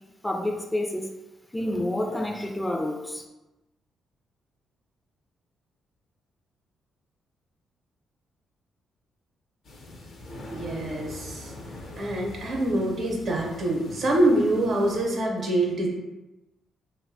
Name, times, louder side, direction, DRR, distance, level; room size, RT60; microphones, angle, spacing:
voice 1, 0.2-1.1 1.5-3.2, left 1 dB, 15° left, 3 dB, 0.4 m, -29 dB
sound 1, 9.6-15.1, left 1 dB, 65° left, 0.6 m, -42 dB
voice 2, 10.5-11.5 12.0-15.9, right 1 dB, 65° right, -1 dB, 0.7 m, -25 dB
2.7 x 2.1 x 2.6 m, 1.0 s
supercardioid pair, 55°, 0 cm